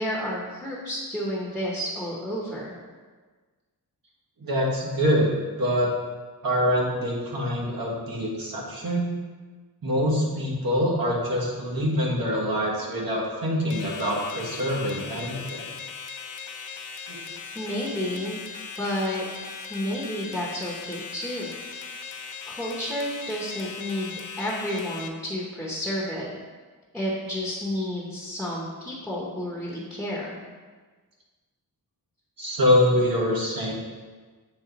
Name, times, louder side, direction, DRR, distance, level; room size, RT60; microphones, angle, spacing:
voice 1, 0.0-2.7 17.5-18.4 18.8-19.2 19.7-21.5 22.5-26.3 26.9-30.4, equal, ahead, -6 dB, 0.9 m, -31 dB
voice 2, 4.4-5.3 5.6-5.9 6.4-9.1 9.8-15.7 17.1-17.2 32.4-33.7, equal, 70° right, -4 dB, 1.4 m, -25 dB
sound 1, 13.7-25.1, left 5 dB, 55° left, 0.5 m, -38 dB
7.9 x 3.5 x 4.0 m, 1.4 s
wide cardioid pair, 170°, 37 cm